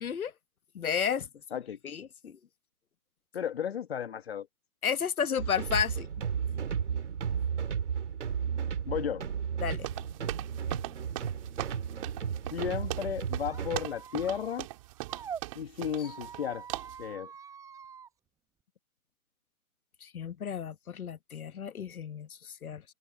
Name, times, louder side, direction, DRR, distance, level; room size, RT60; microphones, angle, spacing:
voice 1, 0.0-0.3 0.7-1.3 1.8-2.4 4.8-6.1 9.6-9.9 20.0-22.8, left 7 dB, 70° left, 1.2 m, -32 dB
voice 2, 3.3-4.5 8.9-9.3 12.5-14.7 15.5-16.6 17.0-17.3, left 8 dB, 45° left, 1.3 m, -34 dB
sound 1, 5.4-13.8, right 7 dB, 50° right, 2.6 m, -34 dB
sound 2, 9.8-16.4 16.7-17.0, right 19 dB, 20° right, 3.7 m, -40 dB
Squeak, 13.4-15.4 16.0-18.1, right 7 dB, 5° right, 7.0 m, -45 dB
open air
hypercardioid pair, 160°, 44 cm